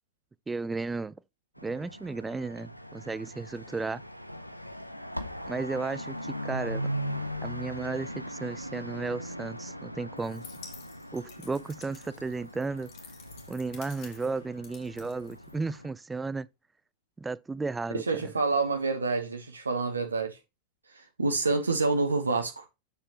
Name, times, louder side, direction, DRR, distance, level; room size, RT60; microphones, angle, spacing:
voice 1, 0.5-1.2 1.6-4.0 5.5-6.9 7.4-10.4 11.1-12.9 13.5-16.5 17.2-18.0, right 3 dB, 10° right, 0.3 m, -34 dB
sound 1, 1.6-15.9, equal, 90° left, 0.6 m, -39 dB
sound 2, 10.2-15.9, left 7 dB, 40° left, 1.5 m, -52 dB
voice 2, 17.9-20.4 20.9-22.7, right 3 dB, 75° right, 1.0 m, -28 dB
7.0 x 6.5 x 2.9 m
figure-of-eight pair, 90°, 0 cm